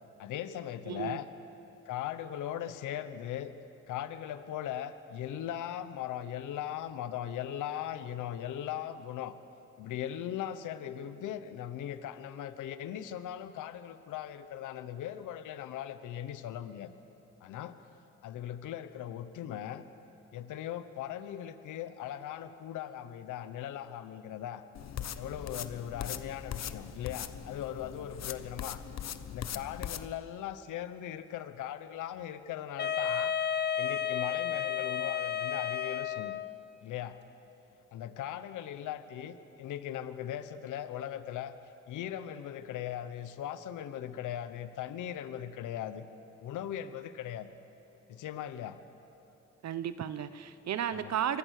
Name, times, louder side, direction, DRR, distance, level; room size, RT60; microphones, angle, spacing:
voice 1, 0.2-1.3 1.9-3.5 3.9-9.3 9.8-16.9 17.4-17.8 18.2-19.9 20.3-24.6 25.1-28.8 29.3-33.3 33.8-36.4 36.8-37.2 37.9-41.6 41.9-46.1 46.4-47.5 48.1-48.8 50.9-51.1, left 10 dB, 85° left, 12 dB, 1.1 m, -39 dB
voice 2, 0.9-1.2 49.6-51.4, right 9 dB, 60° right, 13 dB, 1.0 m, -34 dB
sound 1, 24.7-30.1, left 9 dB, 60° left, 1.1 m, -40 dB
Wind instrument woodwind instrument, 32.8-36.6, left 9 dB, 35° left, 0.8 m, -32 dB
27.0 x 22.5 x 6.6 m, 2.9 s
cardioid pair, 90°, 30 cm